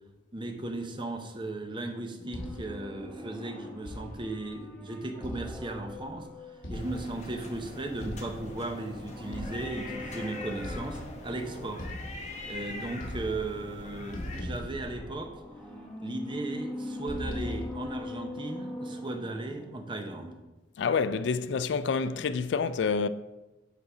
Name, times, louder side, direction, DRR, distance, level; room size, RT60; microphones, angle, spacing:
voice 1, 0.3-6.3 6.7-11.9 12.5-15.3 16.0-20.4, right 2 dB, 25° right, 0.7 m, -36 dB
sound 1, 2.2-7.9 9.0-12.0 14.8-20.0 20.3-20.4, left 1 dB, 5° left, 0.9 m, -42 dB
sound 2, 2.3-2.9 3.9-4.4 5.2-6.0 6.6-7.4 8.0-8.6 9.3-10.1 10.6-11.3 11.8-12.6 12.9-13.8 14.1-15.6 17.1-18.0, left 1 dB, 80° left, 1.1 m, -40 dB
sound 3, 6.7-14.4, left 2 dB, 40° left, 1.1 m, -42 dB
voice 2, 20.8-23.1, left 5 dB, 65° left, 0.3 m, -28 dB
8.2 x 3.8 x 4.9 m
head